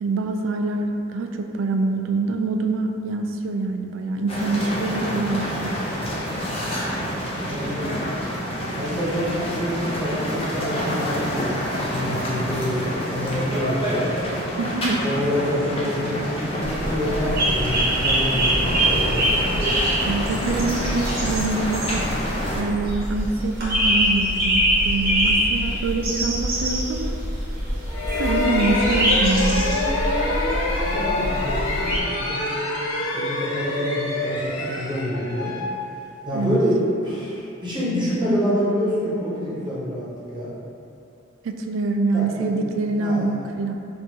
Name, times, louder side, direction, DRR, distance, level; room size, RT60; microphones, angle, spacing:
voice 1, 0.0-5.8 14.6-15.0 20.0-22.0 22.6-27.2 28.1-29.7 36.3-36.6 41.4-43.7, right 3 dB, 70° right, 5 dB, 0.3 m, -25 dB
sound 1, 4.3-22.6, equal, 30° left, 0.6 m, -27 dB
voice 2, 7.4-7.9 8.7-11.5 11.8-14.1 15.0-19.3 30.8-32.5 33.0-35.6 36.2-40.1 40.3-40.5 42.1-42.5 43.0-43.3, equal, 25° right, -8 dB, 0.9 m, -27 dB
sound 2, 16.6-32.0, right 1 dB, 50° right, 0.8 m, -24 dB
sound 3, 27.9-36.5, left 2 dB, 85° left, 0.6 m, -26 dB
4.4 x 2.5 x 2.8 m, 2.6 s
head